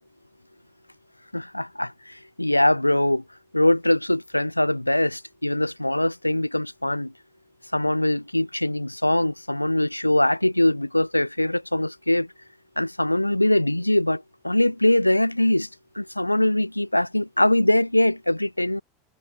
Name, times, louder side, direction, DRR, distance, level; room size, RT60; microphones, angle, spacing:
voice 1, 1.3-3.2 3.5-7.1 7.7-12.3 12.8-15.7 16.0-18.8, left 1 dB, 90° left, 0.4 m, -22 dB
figure-of-eight pair, 85°, 0 cm